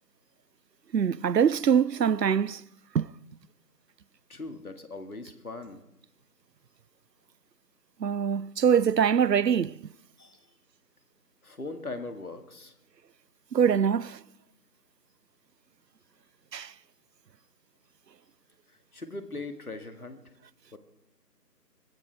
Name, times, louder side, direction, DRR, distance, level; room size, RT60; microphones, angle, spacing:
voice 1, 0.9-2.6 2.9-3.1 8.0-9.8 13.5-14.2 16.5-16.7, right 7 dB, 80° right, 0.6 m, -23 dB
voice 2, 4.3-5.8 10.2-10.4 11.4-12.7 18.9-20.2 20.7-20.8, left 2 dB, 60° left, 2.1 m, -40 dB
24.0 x 15.0 x 3.5 m
figure-of-eight pair, 170°, 49 cm